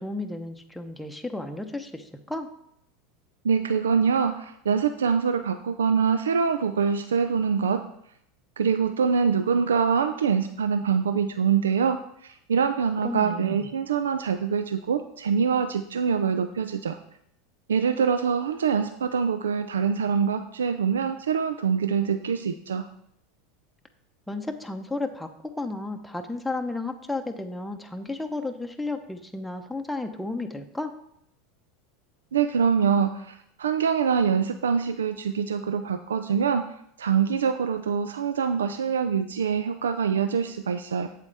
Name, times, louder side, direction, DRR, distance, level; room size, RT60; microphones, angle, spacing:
voice 1, 0.0-2.5 13.0-13.7 24.3-25.3 25.6-30.9, left 2 dB, 5° left, 4 dB, 0.8 m, -33 dB
voice 2, 3.4-7.8 8.6-17.0 17.7-22.9 32.3-36.7 37.0-41.1, right 6 dB, 85° right, 9 dB, 0.4 m, -24 dB
8.1 x 7.4 x 3.4 m, 0.72 s
hypercardioid pair, 90°, 0 cm